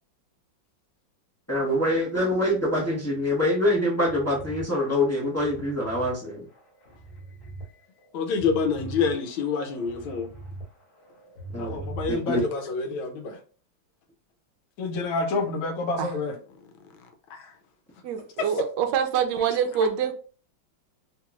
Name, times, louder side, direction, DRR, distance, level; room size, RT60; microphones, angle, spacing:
voice 1, 1.5-6.4 11.5-11.8 12.1-12.4, left 1 dB, 15° left, 0.6 m, -25 dB
sound 1, 4.0-6.1 6.6-7.6 8.0-10.6 11.0-12.5, right 2 dB, 55° left, 1.5 m, -41 dB
voice 2, 8.1-10.3 11.6-13.4 14.8-16.4 17.0-17.5, left 4 dB, 85° left, 1.5 m, -28 dB
voice 3, 18.0-20.1, right 8 dB, 70° right, 1.1 m, -25 dB
3.5 x 3.0 x 2.4 m
omnidirectional pair, 2.1 m